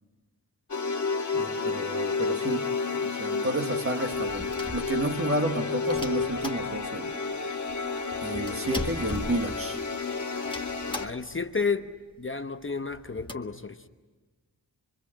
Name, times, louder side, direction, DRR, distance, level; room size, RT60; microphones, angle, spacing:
sound 1, 0.7-11.1, left 4 dB, 45° left, 1.7 m, -31 dB
voice 1, 1.3-2.7 3.0-7.5 8.2-9.8, right 2 dB, 35° right, 1.4 m, -31 dB
sound 2, 4.0-5.4 5.9-7.1 7.4-7.5 7.7-10.0 10.4-11.5 11.8-11.9 12.1-12.3 12.8-13.3, left 2 dB, 10° left, 1.4 m, -39 dB
voice 2, 10.9-11.9 12.2-13.9, left 4 dB, 30° left, 0.9 m, -31 dB
24.5 x 24.5 x 8.8 m
wide cardioid pair, 110°, 39 cm